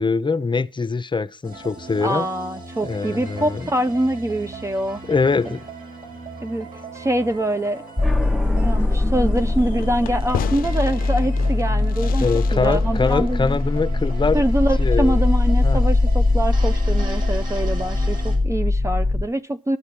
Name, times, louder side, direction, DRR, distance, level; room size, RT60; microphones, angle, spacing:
voice 1, 0.0-2.2 2.8-3.6 5.1-5.6 12.2-14.4 14.8-15.2 15.6-15.8, left 4 dB, 35° left, 0.8 m, -23 dB
sound 1, 1.4-18.4, right 3 dB, 70° right, 5.1 m, -38 dB
voice 2, 2.0-5.0 6.4-6.7 6.9-7.8 8.6-12.3 12.5-13.6 14.3-19.8, right 1 dB, 20° right, 0.7 m, -24 dB
sound 2, 8.0-19.2, left 2 dB, ahead, 1.0 m, -21 dB
Fireworks, 9.3-14.6, left 11 dB, 80° left, 0.4 m, -35 dB
13.0 x 4.6 x 8.5 m
supercardioid pair, 40°, 15 cm